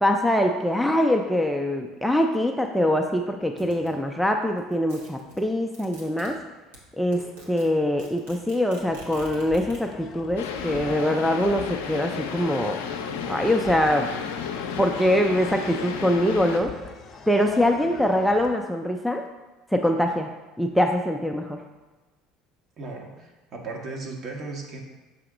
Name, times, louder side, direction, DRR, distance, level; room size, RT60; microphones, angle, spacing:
voice 1, 0.0-6.4 7.0-12.8 13.3-14.1 14.8-16.7 17.3-19.2 19.7-20.3 20.6-21.6, left 1 dB, ahead, 3 dB, 0.4 m, -23 dB
sound 1, 3.6-4.0 4.6-6.3 6.7-6.8 7.1-7.6 7.9-9.8, right 3 dB, 80° right, 1.3 m, -46 dB
sound 2, 8.8-18.6, left 6 dB, 40° left, 0.6 m, -43 dB
sound 3, 10.4-16.6, left 6 dB, 80° left, 0.5 m, -32 dB
voice 2, 22.8-24.8, right 3 dB, 50° right, 0 dB, 1.3 m, -36 dB
6.9 x 2.8 x 4.9 m, 1.2 s
hypercardioid pair, 80°, 0 cm